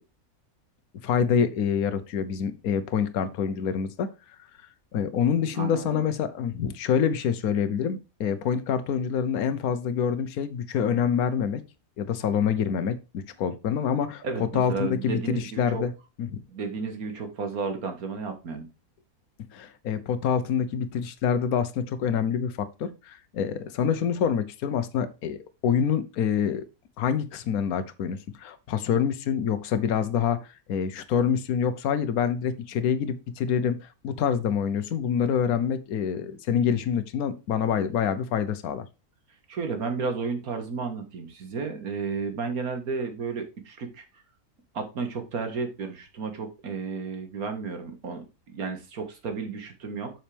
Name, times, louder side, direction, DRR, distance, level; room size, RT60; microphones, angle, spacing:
voice 1, 1.0-4.1 4.9-11.6 12.0-14.2 14.5-15.9 16.3-16.4 19.5-25.4 25.6-26.7 27.0-30.4 30.7-38.9, left 7 dB, 70° left, 1.3 m, -26 dB
voice 2, 5.4-6.0 14.2-15.8 16.5-18.7 39.5-44.1 44.7-50.1, right 4 dB, 70° right, 2.0 m, -32 dB
7.3 x 6.4 x 3.4 m
omnidirectional pair, 1.6 m